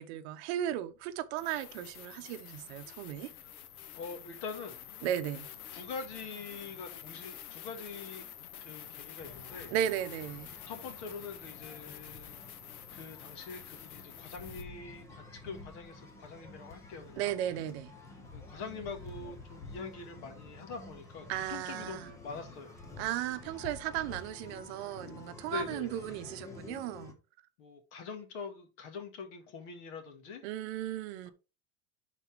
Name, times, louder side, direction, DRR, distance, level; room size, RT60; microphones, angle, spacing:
voice 1, 0.0-3.3 5.0-5.5 9.7-10.5 17.2-17.9 21.3-22.1 23.0-27.2 30.4-31.3, right 11 dB, 50° right, 0.8 m, -35 dB
sound 1, 0.6-0.7 1.4-14.6, left 10 dB, 90° left, 1.1 m, -48 dB
voice 2, 3.9-4.8 5.7-8.3 8.6-9.7 10.7-12.4 12.9-17.3 18.3-22.8 25.4-26.0 27.6-30.4 31.3-31.4, left 5 dB, 50° left, 1.8 m, -44 dB
sound 2, 9.2-27.1, left 3 dB, 10° left, 0.4 m, -50 dB
11.0 x 4.2 x 3.4 m
supercardioid pair, 170°, 42 cm